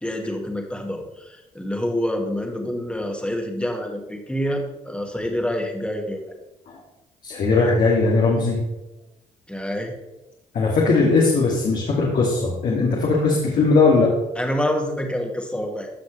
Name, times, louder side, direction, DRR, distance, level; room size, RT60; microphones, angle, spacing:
voice 1, 0.0-6.2 9.5-9.9 14.4-15.9, equal, 5° left, 2 dB, 2.2 m, -27 dB
voice 2, 7.2-8.6 10.5-14.1, left 3 dB, 65° left, -5 dB, 2.5 m, -19 dB
15.0 x 5.9 x 3.3 m, 0.97 s
supercardioid pair, 65°, 15 cm